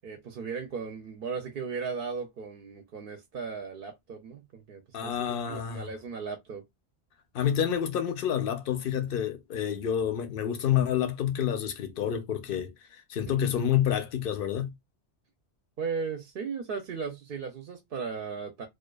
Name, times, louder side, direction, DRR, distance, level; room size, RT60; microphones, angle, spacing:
voice 1, 0.0-6.6 13.3-13.5 15.8-18.7, right 5 dB, 60° right, 0.7 m, -36 dB
voice 2, 4.9-5.9 7.3-12.7 13.1-14.7, left 9 dB, 65° left, 0.7 m, -28 dB
2.3 x 2.3 x 2.2 m
omnidirectional pair, 1.1 m